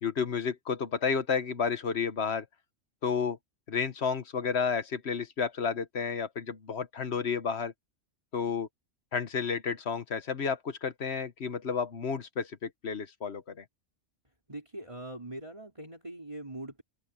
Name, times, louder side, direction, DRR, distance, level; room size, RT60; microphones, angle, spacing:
voice 1, 0.0-2.5 3.0-3.4 3.7-7.7 8.3-8.7 9.1-13.6, left 6 dB, 60° left, 1.4 m, -31 dB
voice 2, 14.5-16.8, right 1 dB, 25° right, 4.2 m, -42 dB
open air
omnidirectional pair, 1.3 m